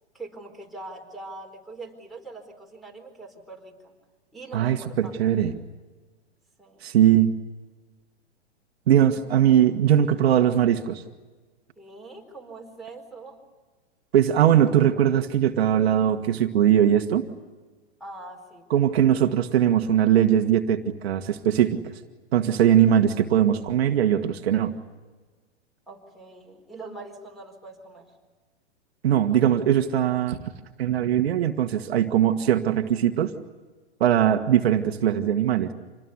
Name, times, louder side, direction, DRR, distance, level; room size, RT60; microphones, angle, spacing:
voice 1, 0.1-3.9 4.3-5.2 6.6-6.9 11.8-13.4 18.0-19.0 22.5-22.8 25.9-28.1, right 2 dB, ahead, -2 dB, 4.4 m, -43 dB
voice 2, 4.5-5.5 6.8-7.3 8.9-11.0 14.1-17.3 18.7-21.9 22.3-24.7 29.0-30.4 30.8-33.3 34.0-35.7, right 10 dB, 60° right, 6 dB, 1.6 m, -20 dB
27.0 x 20.0 x 9.6 m, 1.3 s
hypercardioid pair, 125°, 34 cm